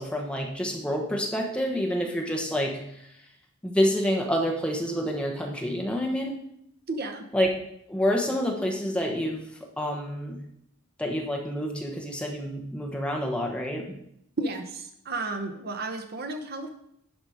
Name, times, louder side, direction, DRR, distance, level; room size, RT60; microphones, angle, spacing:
voice 1, 0.0-3.0 3.6-6.3 7.3-7.5 7.9-9.4 9.8-10.4 11.0-13.9, equal, 5° left, 0 dB, 1.0 m, -28 dB
voice 2, 6.9-7.2 14.4-16.7, right 2 dB, 45° right, 5 dB, 0.8 m, -32 dB
11.5 x 4.8 x 4.9 m, 0.74 s
head